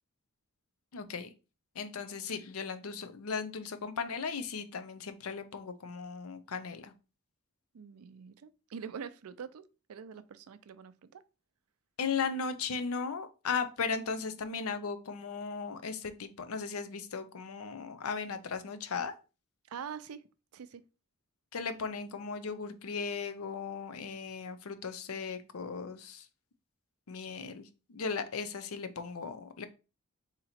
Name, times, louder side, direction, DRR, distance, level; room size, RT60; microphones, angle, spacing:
voice 1, 0.9-1.3 1.8-6.9 12.0-19.1 21.5-26.3 27.1-29.7, left 5 dB, 75° left, 0.6 m, -37 dB
voice 2, 7.7-11.2 19.7-20.2 20.5-20.9, right 7 dB, 90° right, 0.4 m, -45 dB
3.8 x 2.9 x 4.2 m
head